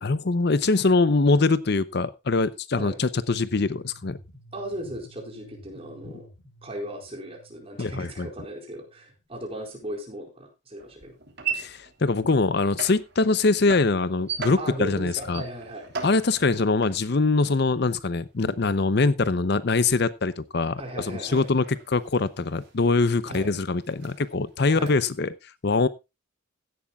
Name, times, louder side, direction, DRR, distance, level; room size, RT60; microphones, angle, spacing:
voice 1, 0.0-4.2 7.8-8.3 11.5-15.4 16.0-25.9, left 3 dB, 50° left, 16 dB, 0.6 m, -23 dB
sound 1, 3.3-9.3, right 1 dB, 90° left, 2.9 m, -52 dB
voice 2, 4.5-6.3 6.6-11.2 14.6-15.9 20.8-21.5 23.3-23.5 24.7-24.9, right 1 dB, 30° right, 2 dB, 4.6 m, -37 dB
sound 2, 10.8-18.5 18.8-25.3, right 6 dB, 50° right, 3.3 m, -39 dB
16.0 x 11.5 x 2.3 m, 0.25 s
head